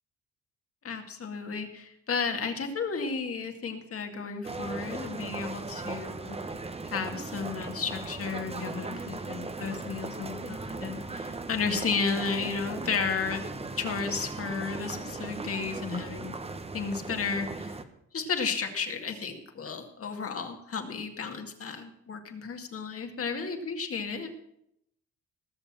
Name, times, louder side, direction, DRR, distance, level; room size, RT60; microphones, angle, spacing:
voice 1, 0.8-6.4 6.8-13.4 13.8-16.3 16.7-17.8 18.1-24.3, left 5 dB, 50° left, 5 dB, 2.3 m, -33 dB
sound 1, 4.4-17.8, right 3 dB, 20° right, 1.2 m, -38 dB
18.5 x 6.9 x 7.6 m, 0.76 s
cardioid pair, 90°, 30 cm